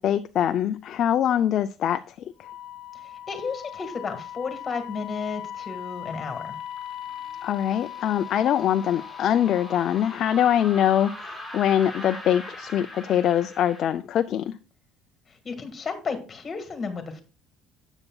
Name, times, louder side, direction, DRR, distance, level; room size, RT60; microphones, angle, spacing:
voice 1, 0.0-2.1 7.4-14.5, left 10 dB, 40° left, 9 dB, 0.3 m, -23 dB
Wind instrument woodwind instrument, 2.4-10.6, left 10 dB, 70° left, 0.7 m, -39 dB
voice 2, 3.0-6.6 15.3-17.2, left 5 dB, 20° left, 7 dB, 1.6 m, -33 dB
sound 1, 6.1-13.9, left 1 dB, ahead, 3.8 m, -42 dB
12.5 x 8.0 x 2.3 m, 0.34 s
cardioid pair, 175°, 0 cm